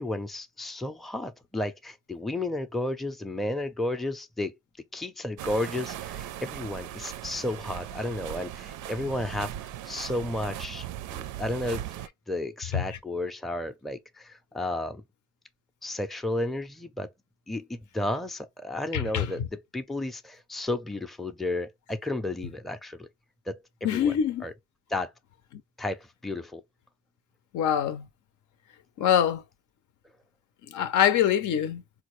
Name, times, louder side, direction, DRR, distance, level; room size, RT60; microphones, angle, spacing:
voice 1, 0.0-4.5 4.9-9.5 9.9-11.8 12.3-15.0 15.8-17.1 17.5-23.1 23.5-24.5 24.9-25.1 25.8-26.6, left 1 dB, ahead, 0.5 m, -33 dB
sound 1, 5.4-12.1, right 12 dB, 80° right, 0.5 m, -38 dB
voice 2, 18.9-19.3 23.8-24.4 27.5-28.0 29.0-29.4 30.7-31.8, left 9 dB, 75° left, 0.6 m, -24 dB
4.0 x 2.3 x 3.0 m
cardioid pair, 90°, 30 cm